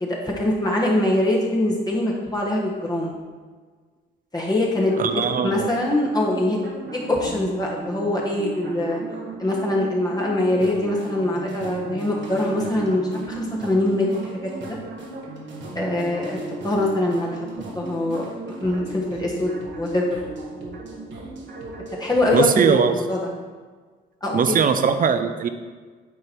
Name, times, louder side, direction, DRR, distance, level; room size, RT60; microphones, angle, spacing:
voice 1, 0.0-3.1 4.3-4.9 5.4-6.7 7.1-9.0 9.4-13.0 13.3-14.5 15.7-16.4 16.6-17.4 17.7-20.2 22.0-23.3 24.2-24.5, left 1 dB, 20° left, -3 dB, 1.3 m, -23 dB
sound 1, 4.7-22.6, right 2 dB, 65° right, 1.6 m, -36 dB
voice 2, 5.0-5.7 22.3-22.9 24.3-25.5, right 6 dB, 45° right, 9 dB, 0.7 m, -20 dB
9.5 x 4.0 x 4.5 m, 1.5 s
cardioid pair, 90°, 20 cm